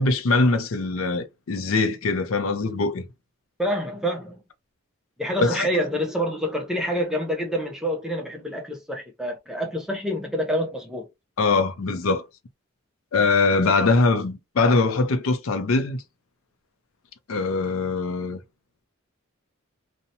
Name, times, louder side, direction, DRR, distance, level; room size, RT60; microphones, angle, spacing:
voice 1, 0.0-3.0 5.4-5.7 11.4-12.2 13.1-16.0 17.3-18.4, left 3 dB, 70° left, 0.5 m, -22 dB
voice 2, 3.6-4.4 5.2-11.1, equal, 5° right, 0.5 m, -27 dB
2.7 x 2.1 x 2.6 m
head